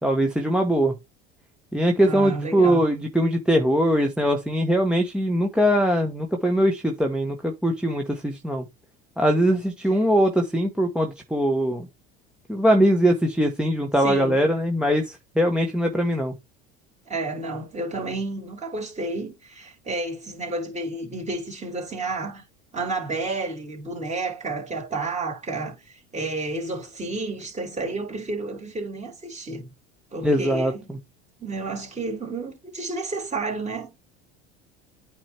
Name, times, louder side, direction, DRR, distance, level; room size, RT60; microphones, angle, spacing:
voice 1, 0.0-0.9 1.7-8.6 9.2-11.9 12.5-16.3 30.2-30.7, equal, 5° right, 1.2 m, -21 dB
voice 2, 2.0-2.8 14.0-14.5 17.1-22.4 22.7-29.7 30.1-30.9 31.4-34.0, right 3 dB, 20° right, 3.4 m, -31 dB
8.8 x 3.2 x 4.4 m
hypercardioid pair, 85°, 32 cm